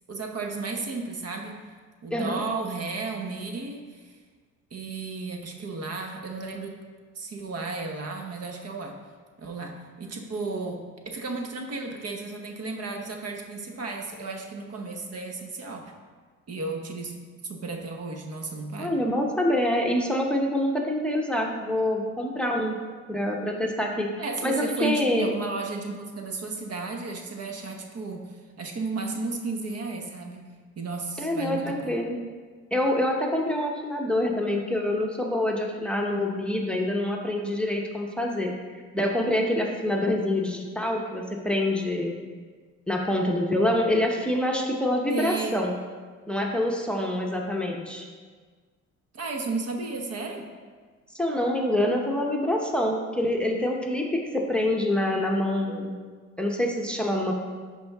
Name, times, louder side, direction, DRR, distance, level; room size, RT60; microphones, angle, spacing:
voice 1, 0.1-1.6 2.0-4.2 4.7-6.8 7.1-9.0 9.4-15.9 16.5-17.2 17.4-19.0 24.2-30.4 30.8-32.0 45.1-45.6 49.1-50.5, right 3 dB, 55° right, 3 dB, 1.1 m, -33 dB
voice 2, 18.8-22.8 23.1-25.3 31.2-32.2 32.7-42.2 42.9-45.8 46.3-48.1 51.1-55.9 56.4-57.3, left 1 dB, 5° left, 0 dB, 0.9 m, -26 dB
11.0 x 4.7 x 3.6 m, 1.5 s
cardioid pair, 90°, 30 cm